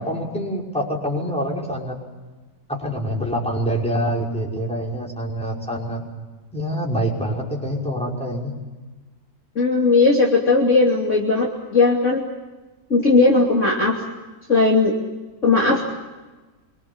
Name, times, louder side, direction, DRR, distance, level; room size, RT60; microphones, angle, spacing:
voice 1, 0.0-2.0 2.7-6.0 6.5-8.5, equal, 5° left, -2 dB, 5.7 m, -25 dB
voice 2, 9.6-12.2 12.9-14.0 14.5-14.9 15.4-15.9, left 3 dB, 40° left, -1 dB, 3.1 m, -17 dB
25.5 x 24.5 x 7.2 m, 1.2 s
omnidirectional pair, 2.0 m